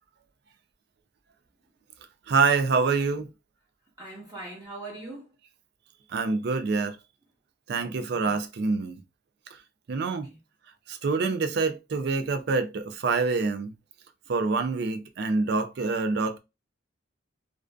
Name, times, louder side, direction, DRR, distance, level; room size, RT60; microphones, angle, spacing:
voice 1, 2.3-3.3 6.1-7.0 7.7-9.0 9.9-10.3 10.9-13.7 14.3-16.4, right 4 dB, 55° right, 0.3 m, -26 dB
voice 2, 4.0-5.3 7.8-8.4 10.0-10.4, right 2 dB, 20° right, 0.9 m, -42 dB
2.5 x 2.4 x 2.2 m
head